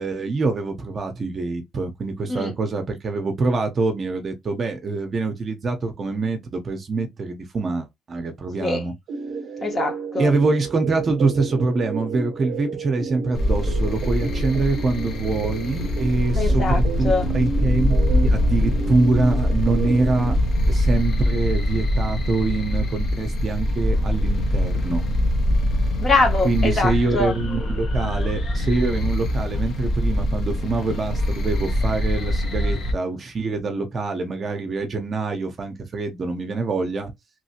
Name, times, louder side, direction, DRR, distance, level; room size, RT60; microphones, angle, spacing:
voice 1, 0.0-8.9 10.2-20.4 20.7-25.0 26.4-37.1, right 3 dB, 35° right, 0.7 m, -25 dB
sound 1, 9.1-20.4, right 5 dB, 70° right, 0.6 m, -32 dB
voice 2, 9.6-10.3 16.4-17.3 26.0-27.4, left 3 dB, 35° left, 1.1 m, -23 dB
sound 2, 13.3-32.9, left 1 dB, 50° left, 0.9 m, -23 dB
3.1 x 2.7 x 2.8 m
cardioid pair, 125°, 0 cm